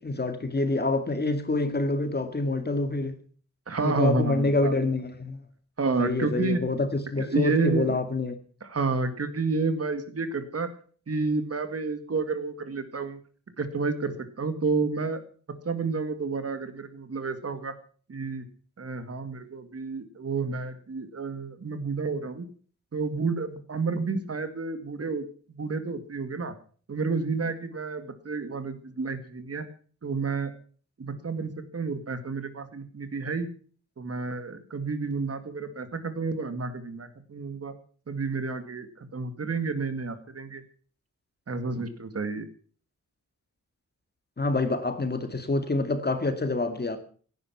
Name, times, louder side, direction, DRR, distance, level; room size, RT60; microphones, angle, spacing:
voice 1, 0.0-3.2 3.8-5.4 6.0-8.3 44.4-47.0, left 2 dB, 35° left, 2.2 m, -27 dB
voice 2, 3.7-4.7 5.8-6.6 7.2-8.0 8.6-10.7 11.1-13.2 13.6-15.2 15.6-17.7 18.1-18.5 18.8-22.5 22.9-26.5 26.9-29.7 30.0-30.5 31.0-33.5 34.0-37.7 38.1-40.6 41.5-42.5, right 4 dB, 50° right, 2.1 m, -30 dB
17.0 x 11.0 x 5.9 m
wide cardioid pair, 120°, 30 cm